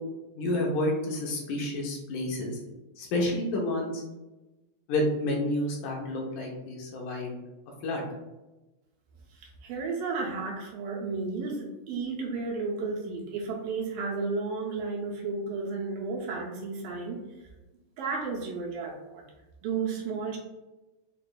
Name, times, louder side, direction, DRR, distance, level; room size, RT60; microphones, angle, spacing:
voice 1, 0.4-2.6 3.0-4.0 4.9-7.3 7.8-8.0, left 1 dB, 75° left, -1 dB, 2.1 m, -29 dB
voice 2, 9.4-17.2 18.0-19.2 19.6-20.4, right 4 dB, 80° right, -2 dB, 2.4 m, -33 dB
6.7 x 2.5 x 2.2 m, 1.1 s
omnidirectional pair, 4.1 m